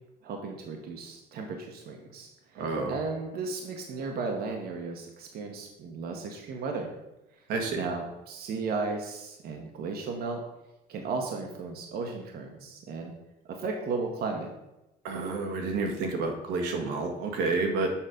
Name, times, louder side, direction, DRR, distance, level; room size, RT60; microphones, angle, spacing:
voice 1, 0.2-2.6 2.9-6.9 7.8-10.4 10.9-13.1 13.5-14.5, right 4 dB, 65° right, 2 dB, 1.3 m, -35 dB
voice 2, 2.6-2.9 7.5-7.8 15.0-17.9, right 3 dB, 85° right, 2 dB, 1.6 m, -29 dB
7.3 x 5.1 x 5.1 m, 0.93 s
cardioid pair, 110°, 17 cm